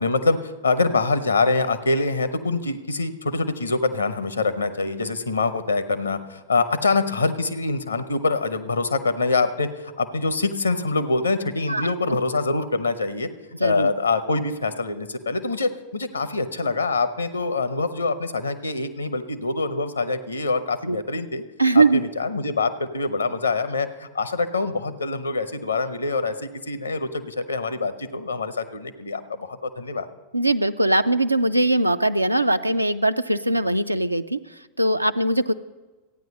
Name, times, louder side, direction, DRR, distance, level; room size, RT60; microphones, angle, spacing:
voice 1, 0.0-13.3 13.6-21.4 21.7-30.1, left 3 dB, 80° left, 12 dB, 0.8 m, -25 dB
voice 2, 13.6-13.9 20.9-21.0 21.6-22.0 30.3-35.5, right 2 dB, 85° right, 11 dB, 0.4 m, -21 dB
14.5 x 9.4 x 5.3 m, 1.2 s
figure-of-eight pair, 90°, 0 cm